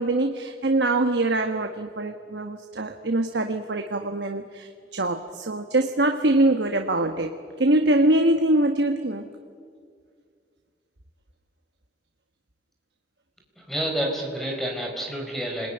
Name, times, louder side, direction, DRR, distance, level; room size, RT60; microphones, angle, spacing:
voice 1, 0.0-9.3, right 2 dB, 75° right, 5 dB, 1.3 m, -23 dB
voice 2, 13.6-15.7, equal, ahead, 1 dB, 4.6 m, -29 dB
28.5 x 21.0 x 9.9 m, 2.2 s
head